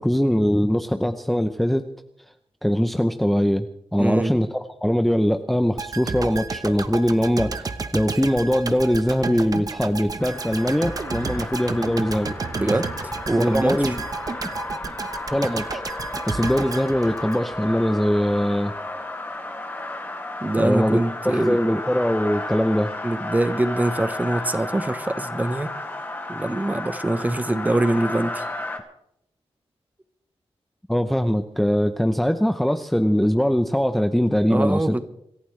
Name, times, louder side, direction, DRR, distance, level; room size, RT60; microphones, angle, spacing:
voice 1, 0.0-1.8 2.6-7.7 7.9-12.3 13.4-14.0 15.3-15.8 16.3-18.7 20.6-23.0 30.9-35.0, equal, ahead, 7 dB, 0.6 m, -22 dB
voice 2, 4.0-4.4 12.5-12.9 13.3-13.8 20.4-21.6 23.0-25.7 26.3-28.4 34.5-35.0, right 2 dB, 15° right, 11 dB, 1.0 m, -23 dB
sound 1, 5.8-17.8 18.1-18.3, right 4 dB, 35° right, 0.9 m, -31 dB
sound 2, 10.2-28.8, left 2 dB, 20° left, 2.2 m, -33 dB
26.5 x 15.0 x 3.3 m, 0.76 s
wide cardioid pair, 150°, 10 cm